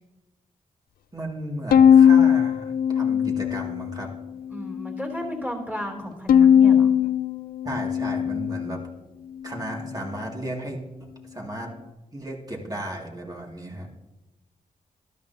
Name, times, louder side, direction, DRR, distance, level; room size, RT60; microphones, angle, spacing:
voice 1, 1.1-4.1 7.6-8.8 9.4-10.8 11.3-11.7 12.1-13.9, right 1 dB, 25° right, -1 dB, 2.3 m, -34 dB
Bowed string instrument, 1.7-4.1 4.5-5.3 6.3-8.8, left 8 dB, 85° left, 0.4 m, -19 dB
voice 2, 4.5-7.0, equal, 10° right, 0 dB, 3.1 m, -34 dB
12.5 x 11.5 x 2.8 m, 1.1 s
cardioid pair, 65°, 15 cm